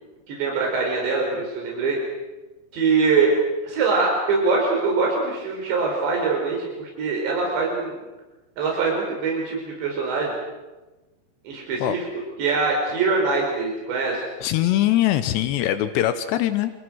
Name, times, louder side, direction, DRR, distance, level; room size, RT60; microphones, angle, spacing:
voice 1, 0.3-2.0 2.7-3.3 3.6-8.0 8.6-10.3 11.5-12.0 12.4-14.2, right 4 dB, 85° right, -1 dB, 6.9 m, -23 dB
voice 2, 14.4-16.7, left 13 dB, 80° left, 11 dB, 3.2 m, -22 dB
29.5 x 28.5 x 6.4 m, 1.1 s
omnidirectional pair, 4.9 m